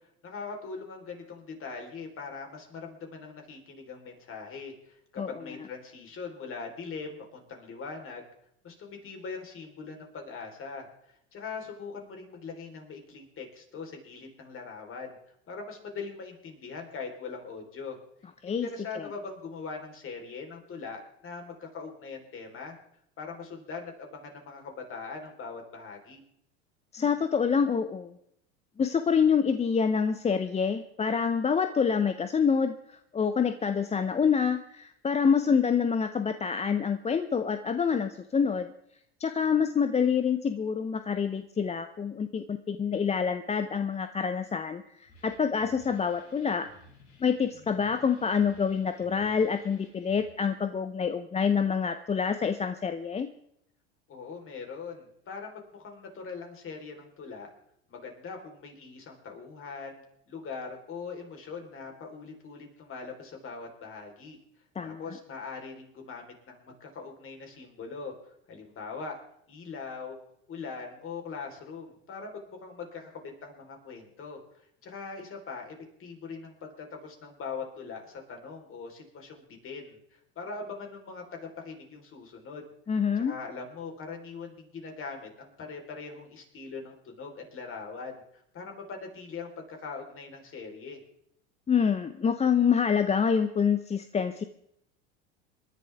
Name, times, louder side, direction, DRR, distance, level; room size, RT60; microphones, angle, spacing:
voice 1, 0.2-8.3 8.6-10.9 11.3-15.2 15.5-18.0 18.5-22.8 23.2-26.2 54.1-57.5 57.9-64.4 64.8-68.1 68.5-69.2 69.5-70.2 70.5-74.4 74.8-75.7 76.0-82.7 83.2-91.0, left 4 dB, 40° left, 2 dB, 4.0 m, -41 dB
voice 2, 26.9-28.1 28.8-38.7 39.2-46.7 47.2-53.3 64.8-65.2 82.9-83.3 91.7-94.4, left 6 dB, 20° left, 10 dB, 0.7 m, -27 dB
sound 1, 45.1-50.3, left 2 dB, 75° left, 7.9 m, -57 dB
27.5 x 11.0 x 3.5 m, 0.74 s
hypercardioid pair, 90°, 34 cm